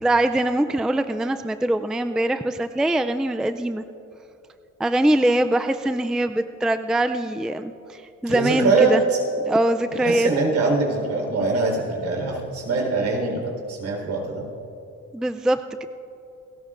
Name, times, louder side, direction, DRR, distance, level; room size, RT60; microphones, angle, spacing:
voice 1, 0.0-3.8 4.8-9.0 9.5-10.3 15.1-15.9, right 1 dB, ahead, 9 dB, 0.4 m, -22 dB
voice 2, 8.3-9.2 10.0-13.4 13.7-14.4, right 3 dB, 65° right, 0 dB, 4.1 m, -22 dB
28.5 x 14.0 x 2.5 m, 2.7 s
cardioid pair, 90°, 30 cm